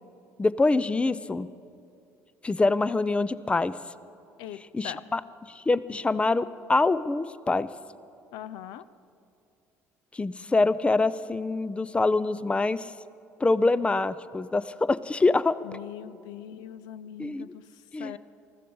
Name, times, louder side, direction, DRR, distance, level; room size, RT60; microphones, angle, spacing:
voice 1, 0.4-1.5 2.4-3.7 4.7-5.2 5.5-7.7 10.1-12.9 13.4-15.6 17.2-17.5 17.9-18.2, left 3 dB, 15° left, 17 dB, 0.5 m, -25 dB
voice 2, 4.4-5.0 8.3-8.9 15.6-18.2, left 10 dB, 70° left, 15 dB, 0.5 m, -41 dB
20.5 x 14.5 x 3.9 m, 2.6 s
hypercardioid pair, 65°, 8 cm